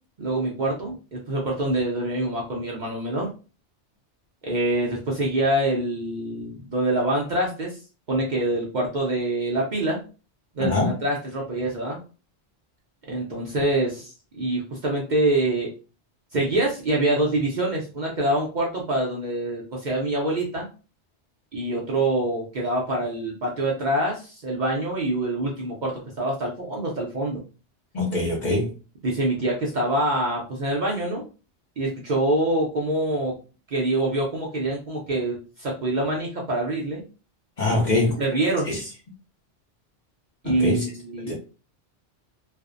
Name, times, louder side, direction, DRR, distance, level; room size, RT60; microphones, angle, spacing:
voice 1, 0.2-3.3 4.4-7.8 8.1-10.0 10.5-12.0 13.1-15.7 16.3-20.7 21.5-27.4 29.0-31.3 31.8-33.4 33.7-37.0 38.2-38.7 40.4-41.3, right 1 dB, 50° right, -2 dB, 0.6 m, -25 dB
voice 2, 10.6-11.0 27.9-28.7 37.6-38.2 38.6-38.8 40.4-40.8 41.2-41.3, left 2 dB, 50° left, -2 dB, 0.6 m, -23 dB
2.5 x 2.0 x 2.4 m, 0.34 s
omnidirectional pair, 1.2 m